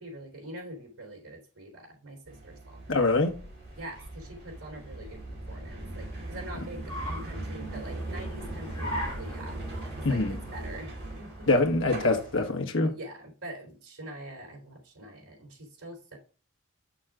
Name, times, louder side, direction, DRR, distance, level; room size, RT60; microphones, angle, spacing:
voice 1, 0.0-3.0 3.8-9.6 9.9-11.5 12.9-16.2, right 1 dB, 75° right, 3.9 m, -44 dB
sound 1, 2.3-12.5, right 2 dB, 50° right, 2.4 m, -40 dB
voice 2, 2.9-3.4 10.0-10.4 11.5-12.9, left 2 dB, 60° left, 1.6 m, -24 dB
Car, 3.2-12.5, equal, 25° left, 3.8 m, -43 dB
6.4 x 6.4 x 3.7 m
head